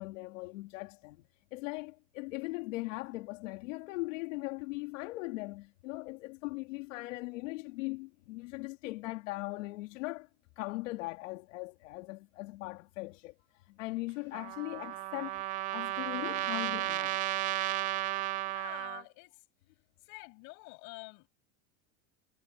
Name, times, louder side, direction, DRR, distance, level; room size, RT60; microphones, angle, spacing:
voice 1, 0.0-10.3 10.6-13.3 13.7-15.4 15.7-17.2, left 22 dB, 85° left, 2.6 m, -39 dB
Trumpet, 14.3-19.0, right 16 dB, 25° right, 0.3 m, -34 dB
voice 2, 18.4-19.4 20.1-21.4, left 31 dB, 50° left, 7.9 m, -48 dB
cardioid pair, 180°, 37 cm